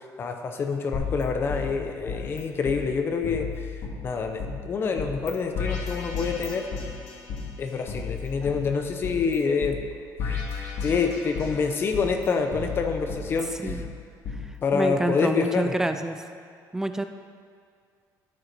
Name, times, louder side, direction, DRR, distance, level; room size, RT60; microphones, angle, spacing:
voice 1, 0.2-3.7 4.0-6.7 7.6-9.8 10.3-10.4 10.8-13.8 14.6-15.7, left 5 dB, 30° left, 5 dB, 0.7 m, -27 dB
sound 1, 0.9-2.4 2.6-2.8 3.2-4.5 5.0-5.3 5.5-7.4 7.9-9.3 9.6-9.7 10.2-11.6 11.9-13.8 14.2-14.4, left 5 dB, 55° left, 2.1 m, -33 dB
voice 2, 14.7-16.2 16.7-17.0, right 1 dB, 5° right, 8 dB, 0.3 m, -27 dB
13.0 x 6.7 x 4.5 m, 2.1 s
cardioid pair, 175°, 7 cm